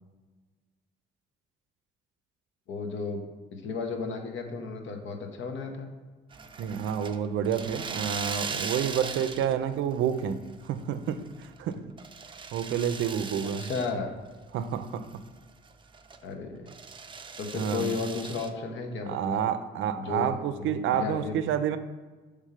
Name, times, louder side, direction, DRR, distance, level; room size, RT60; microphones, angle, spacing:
voice 1, 2.7-3.2 3.5-5.9 13.6-14.1 16.2-16.7 17.4-19.4 20.0-21.4, left 4 dB, 75° left, 4 dB, 0.9 m, -34 dB
sound 1, 6.3-9.7 10.0-10.7 11.1-13.9 14.3-14.4 14.8-16.2 16.7-18.5, right 5 dB, 25° right, 0.4 m, -39 dB
voice 2, 6.6-11.8 12.5-13.7 14.5-15.1 17.5-18.0 19.1-21.8, right 8 dB, 80° right, 11 dB, 0.4 m, -29 dB
5.4 x 3.5 x 5.0 m, 1.3 s
cardioid pair, 90°, 20 cm